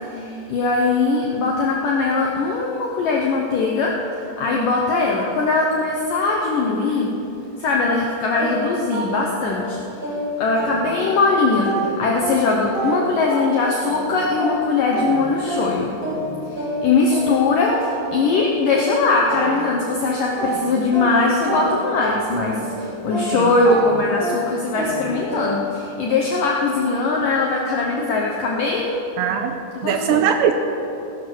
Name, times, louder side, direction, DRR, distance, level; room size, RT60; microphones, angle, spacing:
voice 1, 0.1-3.9 4.4-7.1 7.6-9.8 10.4-15.9 16.5-29.0 29.8-30.2, left 3 dB, 75° left, -1 dB, 1.9 m, -21 dB
sound 1, 8.4-11.2 11.6-20.0 20.4-25.8, right 1 dB, 35° right, 4.0 m, -28 dB
voice 2, 29.2-30.5, right 9 dB, 85° right, 6 dB, 2.6 m, -21 dB
17.0 x 11.0 x 6.2 m, 2.8 s
omnidirectional pair, 5.4 m